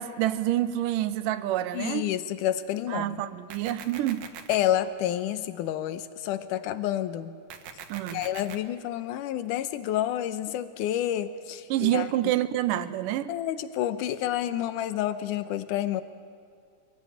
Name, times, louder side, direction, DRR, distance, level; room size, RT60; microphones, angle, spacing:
voice 1, 0.0-2.1 2.9-4.3 7.9-8.2 11.7-13.4, right 13 dB, 85° right, 2.4 m, -27 dB
voice 2, 1.7-3.2 4.5-7.3 8.1-12.1 13.3-16.0, left 11 dB, 80° left, 2.3 m, -29 dB
sound 1, 3.5-4.5 7.5-8.5, right 7 dB, 65° right, 2.5 m, -42 dB
24.5 x 17.0 x 8.8 m
omnidirectional pair, 3.8 m